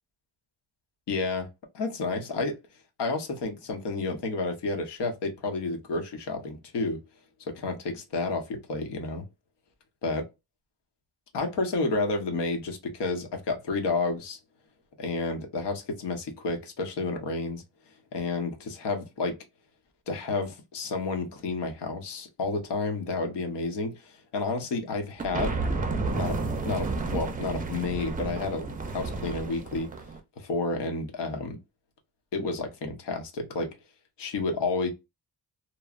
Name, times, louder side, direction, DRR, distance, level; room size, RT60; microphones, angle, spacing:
voice 1, 1.1-1.5 1.7-2.6 3.0-7.0 7.5-9.2 10.0-10.3 11.3-14.4 15.0-17.6 18.1-19.4 20.1-25.6 26.1-26.4 26.6-29.9 30.4-31.6 32.3-33.7 34.2-34.9, left 3 dB, 85° left, 0.9 m, -30 dB
sound 1, 25.2-30.2, right 3 dB, 20° right, 0.4 m, -31 dB
3.0 x 2.0 x 2.3 m
wide cardioid pair, 155°, 40 cm